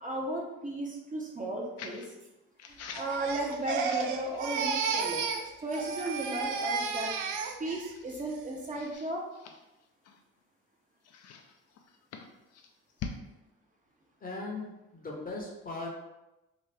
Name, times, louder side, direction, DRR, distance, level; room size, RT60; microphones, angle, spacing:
voice 1, 0.0-2.0 2.7-7.1 7.6-9.2, right 1 dB, 25° right, -2 dB, 0.7 m, -35 dB
sound 1, 1.8-2.1 2.6-4.6 5.0-6.3 6.6-6.8 7.3-7.4 7.9-8.3 8.7-10.4 11.0-13.2, left 6 dB, 55° left, 0.5 m, -46 dB
Crying sobbing, 2.9-5.5 5.7-7.9 8.3-8.7, right 5 dB, 75° right, 0.5 m, -33 dB
voice 2, 14.2-14.7 14.9-15.9, left 3 dB, 30° left, -1 dB, 0.8 m, -38 dB
2.9 x 2.2 x 3.2 m, 0.98 s
supercardioid pair, 80°, 31 cm